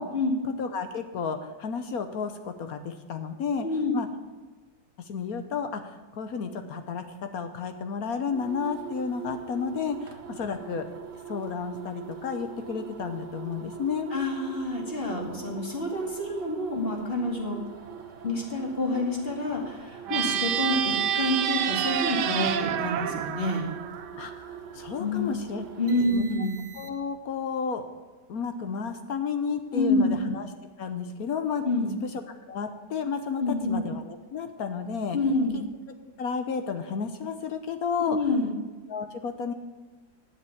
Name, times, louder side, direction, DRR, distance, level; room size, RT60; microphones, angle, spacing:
voice 1, 0.4-3.7 3.9-4.1 5.1-10.9 11.3-14.1 24.2-25.6 26.1-26.2 26.7-27.9 28.3-30.5 30.8-31.6 32.5-35.2 35.5-35.6 36.2-38.2 38.9-39.5, left 6 dB, 65° left, 8 dB, 1.3 m, -32 dB
sound 1, 8.2-27.2, right 8 dB, 50° right, 1.3 m, -42 dB
voice 2, 14.1-17.6 18.2-23.7 25.0-25.3 25.8-26.6 29.7-30.2 31.6-32.0 33.4-33.8 35.1-35.6 38.1-38.5, left 2 dB, 35° left, 1 dB, 2.3 m, -27 dB
sound 2, 20.1-24.5, right 9 dB, 85° right, 1.3 m, -28 dB
10.5 x 7.6 x 8.4 m, 1.3 s
omnidirectional pair, 1.8 m